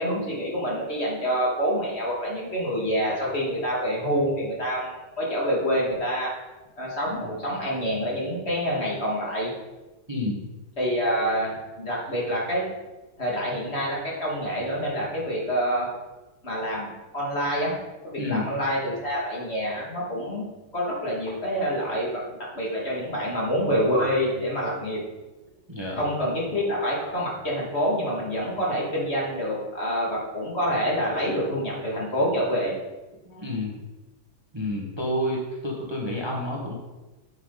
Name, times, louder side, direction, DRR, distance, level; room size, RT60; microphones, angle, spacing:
voice 1, 0.0-6.3 6.8-9.5 10.8-12.7 13.2-15.9 16.4-17.7 18.1-22.2 22.6-25.0 25.9-32.7, equal, 30° left, -4 dB, 2.6 m, -27 dB
voice 2, 10.1-10.4 18.2-18.5 25.7-26.0 33.2-33.8 34.5-36.8, left 1 dB, 15° right, -2 dB, 1.5 m, -29 dB
9.3 x 8.5 x 4.1 m, 1.1 s
omnidirectional pair, 2.2 m